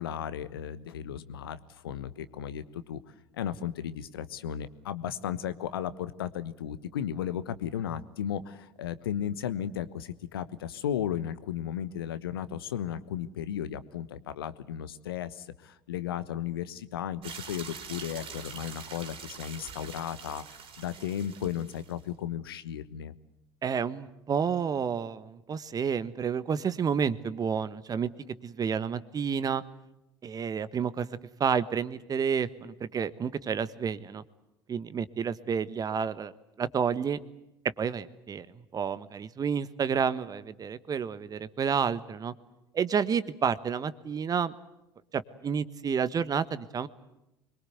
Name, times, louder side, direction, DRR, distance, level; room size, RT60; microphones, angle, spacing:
voice 1, 0.0-3.0 3.3-20.4 20.8-23.1, left 10 dB, 70° left, 14 dB, 1.1 m, -35 dB
sound 1, 17.2-22.0, right 6 dB, 45° right, 3.8 m, -44 dB
voice 2, 23.6-28.1 28.4-29.6 30.2-31.1 31.4-34.2 34.7-36.3 36.6-37.2 37.8-38.5 38.7-42.3 42.7-44.5 45.1-46.9, right 7 dB, 30° right, 15 dB, 1.3 m, -30 dB
25.5 x 22.5 x 8.0 m, 0.91 s
figure-of-eight pair, 65°, 13 cm